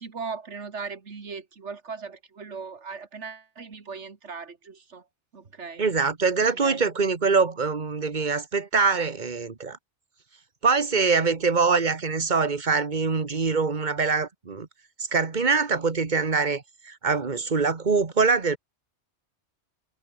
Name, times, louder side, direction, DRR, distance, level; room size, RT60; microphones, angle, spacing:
voice 1, 0.0-5.0 5.3-5.8 6.5-6.9, right 5 dB, 80° right, 2.2 m, -38 dB
voice 2, 5.8-9.8 10.6-14.7 15.1-18.6, right 4 dB, 40° right, 1.7 m, -24 dB
omnidirectional pair, 1.2 m